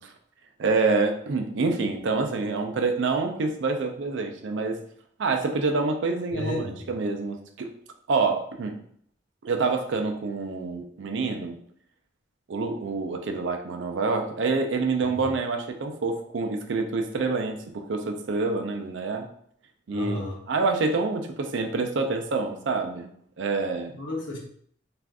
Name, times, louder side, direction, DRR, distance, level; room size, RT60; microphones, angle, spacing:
voice 1, 0.6-4.8 5.2-7.7 8.1-8.8 9.4-11.6 12.5-19.2 19.9-23.1 23.4-23.9, right 3 dB, 65° right, 5 dB, 0.4 m, -27 dB
voice 2, 6.3-6.9 15.0-15.3 19.9-20.4 23.8-24.4, left 1 dB, 70° left, -2 dB, 0.9 m, -33 dB
2.5 x 2.4 x 3.4 m, 0.64 s
head